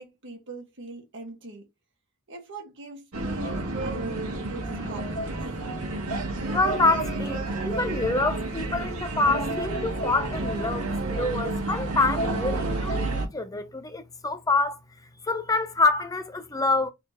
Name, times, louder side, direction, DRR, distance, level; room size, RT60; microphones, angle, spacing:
voice 1, 0.0-1.7 2.3-5.5, right 2 dB, 60° right, 1.9 m, -42 dB
sound 1, 3.1-13.3, right 2 dB, 75° right, 1.9 m, -30 dB
voice 2, 6.5-14.8 15.2-16.9, left 3 dB, 15° left, 0.7 m, -26 dB
4.2 x 4.1 x 3.0 m
head